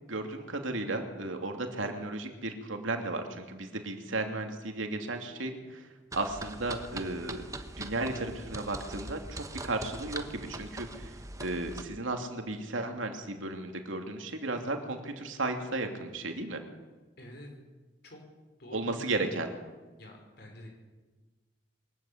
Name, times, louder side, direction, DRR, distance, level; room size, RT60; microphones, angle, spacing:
voice 1, 0.1-7.4 7.8-16.6 18.7-19.5, right 2 dB, 90° right, 4 dB, 2.8 m, -34 dB
sound 1, 6.1-11.8, right 2 dB, 15° right, 1.2 m, -42 dB
voice 2, 17.2-17.5 18.0-18.2 18.6-19.4 20.0-20.7, left 1 dB, 55° left, 1 dB, 5.1 m, -47 dB
23.0 x 14.0 x 8.7 m, 1.2 s
head